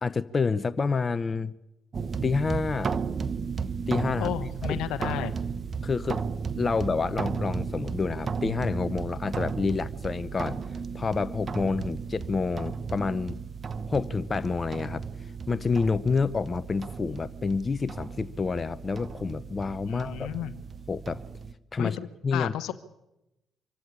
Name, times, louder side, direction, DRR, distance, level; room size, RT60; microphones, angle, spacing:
voice 1, 0.0-1.5 2.2-2.9 3.9-4.3 4.7-4.8 5.8-6.2 6.6-10.6 10.9-13.4 13.9-15.0 15.5-20.3 20.9-21.2 21.7-22.0 22.2-22.5, left 4 dB, 35° left, 14 dB, 0.8 m, -28 dB
sound 1, 1.9-21.5, right 5 dB, 45° right, 1.1 m, -34 dB
voice 2, 4.2-5.4 19.9-20.6 21.8-22.7, left 12 dB, 75° left, 13 dB, 1.1 m, -33 dB
24.5 x 15.5 x 8.6 m, 0.92 s
hypercardioid pair, 50°, 0 cm